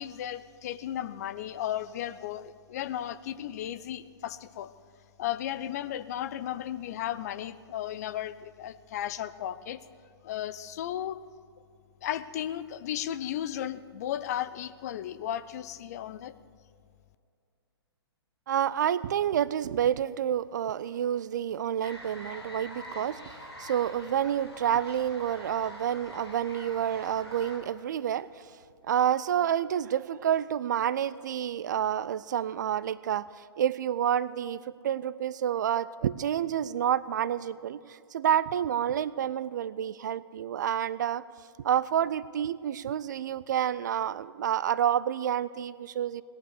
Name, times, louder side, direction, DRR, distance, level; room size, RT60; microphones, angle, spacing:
voice 1, 0.0-4.7 5.2-9.8 10.2-11.2 12.0-16.3, left 11 dB, 40° left, 13 dB, 0.6 m, -35 dB
voice 2, 18.5-28.4 28.9-41.2 41.6-46.2, right 10 dB, 45° right, 18 dB, 0.4 m, -29 dB
sound 1, 21.8-27.6, left 1 dB, 85° left, 4.0 m, -45 dB
18.0 x 11.0 x 6.6 m, 2.3 s
figure-of-eight pair, 115°, 14 cm